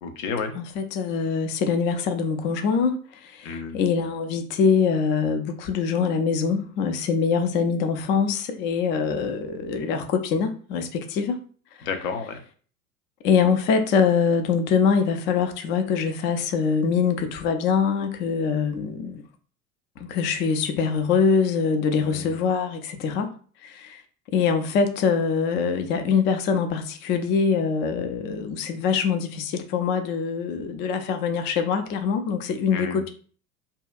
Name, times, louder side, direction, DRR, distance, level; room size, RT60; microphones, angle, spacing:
voice 1, 0.0-0.5 3.4-3.8 11.8-12.4 22.0-22.3 32.7-33.0, left 5 dB, 65° left, 0.7 m, -31 dB
voice 2, 0.5-11.4 11.8-11.9 13.2-19.2 20.0-23.3 23.6-24.0 24.3-33.1, left 6 dB, 30° left, 0.3 m, -24 dB
2.7 x 2.2 x 2.4 m
hypercardioid pair, 75°, 43 cm